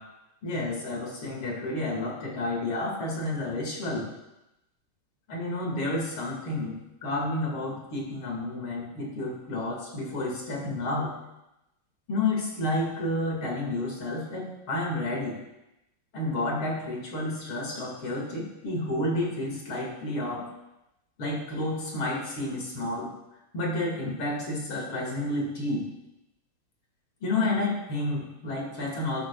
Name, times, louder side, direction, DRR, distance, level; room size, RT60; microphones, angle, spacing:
voice 1, 0.4-4.1 5.3-11.2 12.1-15.4 16.1-20.5 21.2-23.1 23.5-25.9 27.2-29.3, left 2 dB, 80° left, -1 dB, 3.0 m, -30 dB
12.0 x 11.5 x 2.3 m, 0.91 s
omnidirectional pair, 2.2 m